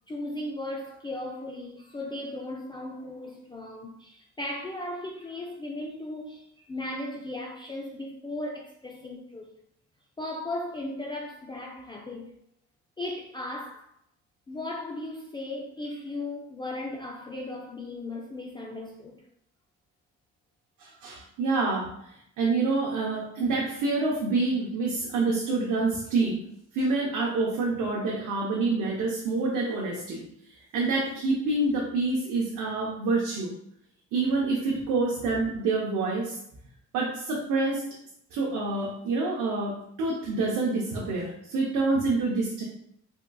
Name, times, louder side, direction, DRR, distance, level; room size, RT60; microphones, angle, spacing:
voice 1, 0.1-9.5 10.2-12.4 13.0-13.9 14.5-19.2, left 1 dB, 15° left, 0.3 m, -36 dB
voice 2, 20.8-21.9 22.4-26.4 26.7-30.2 30.7-33.5 34.1-36.4 36.9-37.8 38.3-42.6, right 3 dB, 85° right, 0.7 m, -27 dB
3.7 x 2.3 x 2.2 m
cardioid pair, 90°, 30 cm